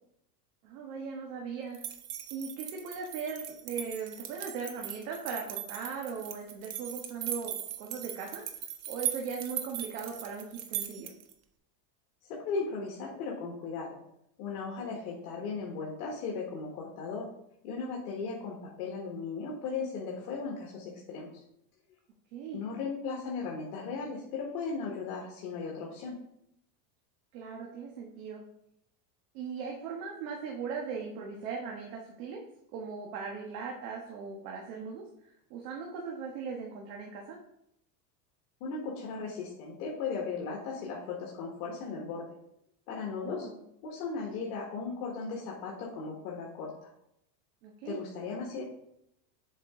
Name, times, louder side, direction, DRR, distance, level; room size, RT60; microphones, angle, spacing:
voice 1, 0.6-1.8 2.3-8.4 8.9-11.1 22.3-22.6 27.3-28.4 29.3-32.4 32.7-37.4 43.1-43.6 47.6-48.0, right 5 dB, 70° right, 0 dB, 1.4 m, -39 dB
sound 1, 1.7-11.3, right 10 dB, 35° right, 0.8 m, -39 dB
voice 2, 12.3-14.0 14.4-17.3 17.6-21.4 22.5-26.2 38.6-42.3 42.9-43.5 43.8-46.9 47.8-48.6, left 4 dB, 70° left, -2 dB, 1.6 m, -37 dB
7.4 x 4.7 x 3.7 m, 0.78 s
supercardioid pair, 130°, 46 cm